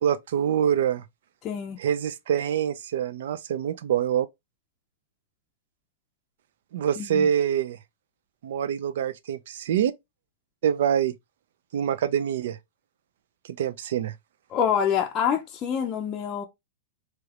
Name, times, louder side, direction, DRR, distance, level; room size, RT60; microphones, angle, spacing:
voice 1, 0.0-1.0 1.8-4.3 6.7-7.8 8.4-9.9 10.6-11.1 11.7-12.6 13.5-14.1, right 9 dB, 70° right, 0.4 m, -25 dB
voice 2, 1.4-1.8 7.0-7.3 14.5-16.4, left 8 dB, 30° left, 0.5 m, -26 dB
3.2 x 3.0 x 2.4 m
hypercardioid pair, 130°, 0 cm